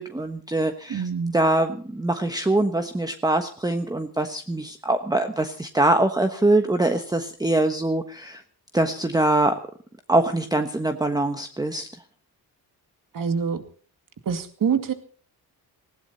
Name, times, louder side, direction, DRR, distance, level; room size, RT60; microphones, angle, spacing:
voice 1, 0.0-1.0 1.3-8.4 8.7-9.6 10.1-11.9, right 2 dB, 10° right, 7 dB, 1.2 m, -23 dB
voice 2, 0.9-1.3 13.1-13.6 14.3-14.9, right 6 dB, 55° right, 8 dB, 2.3 m, -25 dB
19.0 x 17.0 x 4.2 m, 0.42 s
cardioid pair, 100°, 39 cm